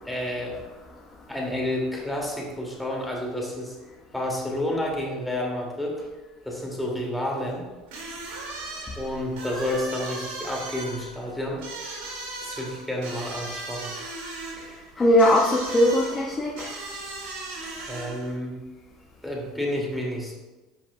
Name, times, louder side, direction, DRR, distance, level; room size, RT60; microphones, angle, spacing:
voice 1, 0.0-0.6 1.3-3.7 4.1-6.0 6.4-7.7 8.9-11.6 12.4-14.0 17.8-18.6 19.2-20.3, left 1 dB, 5° left, -2 dB, 2.2 m, -30 dB
sound 1, 7.9-18.3, right 2 dB, 75° right, 2.1 m, -37 dB
voice 2, 14.6-16.8, left 1 dB, 20° left, -4 dB, 1.2 m, -21 dB
10.5 x 5.4 x 2.2 m, 1.2 s
hypercardioid pair, 80°, 0 cm